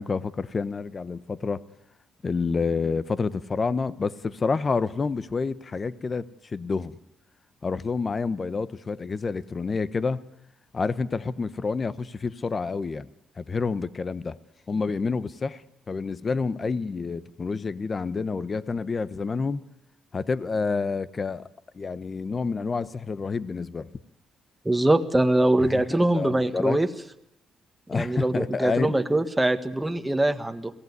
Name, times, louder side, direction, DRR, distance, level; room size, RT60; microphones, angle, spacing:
voice 1, 0.0-1.6 2.2-7.0 7.6-10.2 10.7-13.1 13.4-14.4 14.7-15.6 15.9-19.6 20.1-21.5 21.7-23.9 25.6-26.8 27.9-29.0, left 4 dB, 35° left, 15 dB, 1.0 m, -28 dB
voice 2, 24.6-26.9 27.9-30.7, right 1 dB, 10° right, 7 dB, 1.6 m, -23 dB
23.0 x 17.0 x 9.7 m, 0.81 s
cardioid pair, 90°, 0 cm